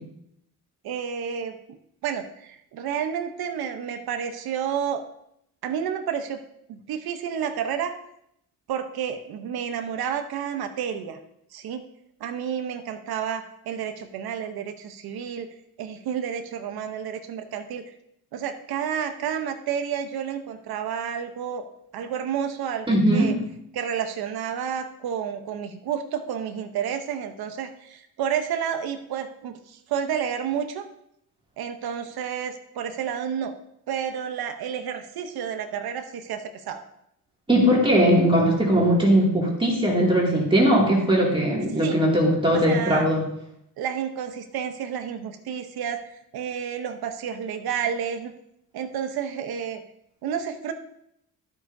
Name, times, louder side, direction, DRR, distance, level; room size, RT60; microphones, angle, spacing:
voice 1, 0.8-1.6 2.0-5.0 5.6-6.4 6.7-7.9 8.7-11.2 11.5-11.8 12.2-15.5 15.8-17.8 18.3-21.6 21.9-23.3 23.7-30.9 31.6-33.5 33.9-36.8 41.8-42.0 42.5-43.1 43.8-46.0 46.3-48.3 48.7-49.8 50.2-50.7, right 8 dB, 80° right, 6 dB, 0.9 m, -30 dB
voice 2, 22.9-23.4 37.5-43.2, equal, 15° right, -3 dB, 2.4 m, -19 dB
12.0 x 8.0 x 2.7 m, 0.76 s
cardioid pair, 120°, 37 cm